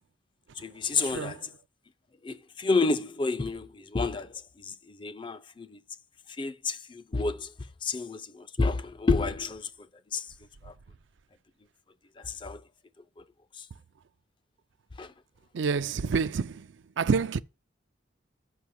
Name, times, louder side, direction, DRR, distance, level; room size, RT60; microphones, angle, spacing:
voice 1, 0.6-1.5 2.2-5.8 6.4-7.5 7.8-9.7 10.1-10.3 10.6-10.7 12.2-12.6 13.2-13.3 13.6-13.7 15.0-15.1, left 3 dB, 25° left, 0.4 m, -30 dB
voice 2, 15.5-16.7 17.0-17.4, right 5 dB, 70° right, 0.4 m, -27 dB
6.9 x 5.7 x 6.2 m
head